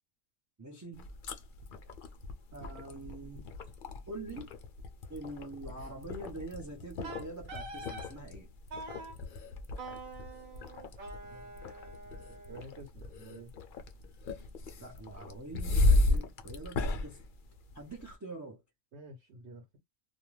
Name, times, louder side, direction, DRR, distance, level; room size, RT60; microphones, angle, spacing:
voice 1, 0.6-1.1 2.5-3.4 4.1-4.5 5.1-8.5 14.8-17.2 17.7-18.6, right 2 dB, 25° right, 0.4 m, -44 dB
sound 1, 0.9-18.1, left 2 dB, 55° left, 0.6 m, -35 dB
Wind instrument woodwind instrument, 7.0-8.1 8.7-9.2 9.8-12.8, right 3 dB, 75° right, 1.2 m, -45 dB
voice 2, 11.2-11.5 12.2-13.5 18.9-19.8, right 2 dB, 55° right, 1.0 m, -50 dB
2.5 x 2.2 x 3.0 m
omnidirectional pair, 1.4 m